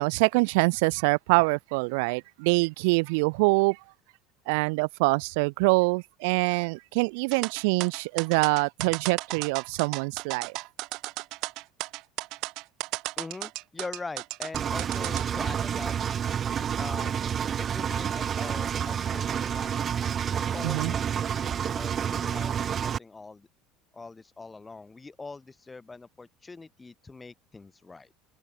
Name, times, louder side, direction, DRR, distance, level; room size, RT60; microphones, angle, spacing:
voice 1, 0.0-3.8 4.5-10.6 20.6-20.9, right 30 dB, 80° right, 1.0 m, -25 dB
sound 1, 7.3-15.2, right 22 dB, 55° right, 6.9 m, -34 dB
voice 2, 13.2-16.1 16.8-17.2 17.6-23.5 23.9-28.1, left 3 dB, 10° left, 4.1 m, -43 dB
Engine, 14.5-23.0, right 8 dB, 25° right, 2.6 m, -29 dB
cardioid pair, 155°, 0 cm